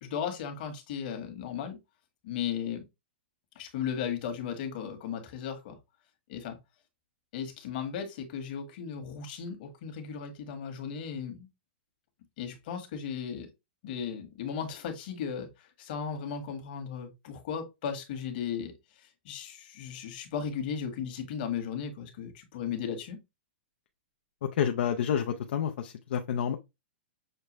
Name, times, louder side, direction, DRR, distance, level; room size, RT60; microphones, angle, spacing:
voice 1, 0.0-1.8 2.2-2.8 3.5-5.8 6.3-6.6 7.3-11.5 12.4-13.5 13.8-23.2, left 7 dB, 50° left, 1.4 m, -36 dB
voice 2, 24.4-26.6, left 8 dB, 70° left, 0.5 m, -29 dB
6.6 x 2.2 x 3.1 m
hypercardioid pair, 150°, 6 cm